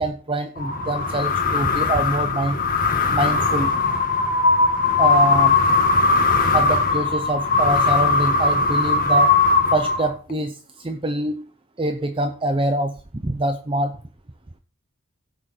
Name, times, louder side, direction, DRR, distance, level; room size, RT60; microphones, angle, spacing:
voice 1, 0.0-2.6 3.1-3.7 5.0-5.6 6.5-9.3 9.7-10.6 10.8-11.5 11.8-13.9, right 1 dB, 25° right, 7 dB, 0.7 m, -24 dB
sound 1, 0.6-10.3, left 3 dB, 45° left, 2.0 m, -19 dB
16.0 x 6.3 x 4.5 m, 0.37 s
head